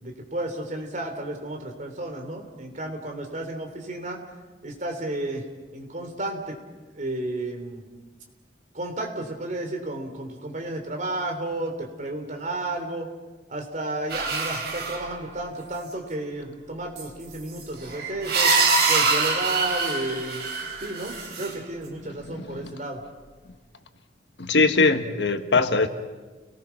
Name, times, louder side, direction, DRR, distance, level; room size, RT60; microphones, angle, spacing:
voice 1, 0.0-4.2 4.6-5.4 5.7-6.5 7.0-7.8 8.7-13.1 13.5-18.5 18.9-20.4 20.8-23.0, right 2 dB, 45° right, 3 dB, 3.5 m, -32 dB
sound 1, 14.1-15.1 17.0-17.1 17.6-21.5, right 4 dB, 65° right, 4.1 m, -24 dB
voice 2, 22.0-22.7 24.4-25.9, left 3 dB, 85° left, 8 dB, 1.4 m, -22 dB
30.0 x 19.0 x 5.9 m, 1.3 s
head